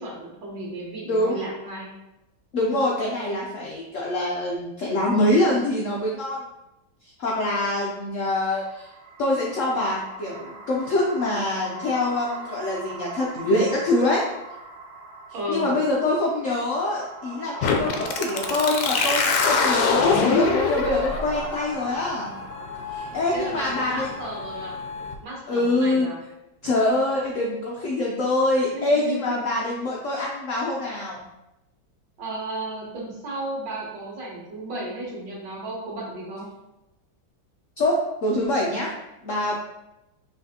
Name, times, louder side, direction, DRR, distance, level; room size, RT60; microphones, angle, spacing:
voice 1, 0.0-1.9 15.3-15.8 23.3-24.8 25.2-26.2 28.7-29.4 32.2-36.5, right 1 dB, 65° right, -3 dB, 1.8 m, -34 dB
voice 2, 1.1-1.4 2.5-6.4 7.2-8.9 9.2-14.3 15.5-22.3 22.9-24.1 25.5-26.1 26.6-31.2 37.8-38.9 39.2-39.5, left 1 dB, 90° left, -2 dB, 0.6 m, -24 dB
sound 1, 8.5-25.5, right 4 dB, 85° right, 1.6 m, -40 dB
sound 2, 17.6-25.1, left 5 dB, 70° left, 1.0 m, -25 dB
5.7 x 3.3 x 2.8 m, 0.92 s
omnidirectional pair, 2.2 m